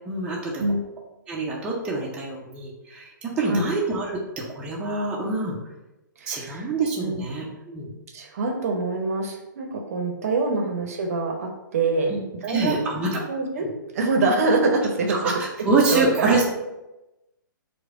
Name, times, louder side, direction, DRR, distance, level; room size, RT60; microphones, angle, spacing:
voice 1, 0.1-0.6 1.3-5.6 6.3-7.9 10.5-10.6 12.1-13.2 13.6-13.7 15.1-16.5, right 3 dB, 10° right, -5 dB, 0.6 m, -26 dB
voice 2, 6.2-6.7 7.0-7.2 8.1-12.1 12.4-13.7 13.9-15.2 15.9-16.3, right 3 dB, 45° right, 2 dB, 0.8 m, -25 dB
4.6 x 2.2 x 4.7 m, 0.99 s
figure-of-eight pair, 120°, 11 cm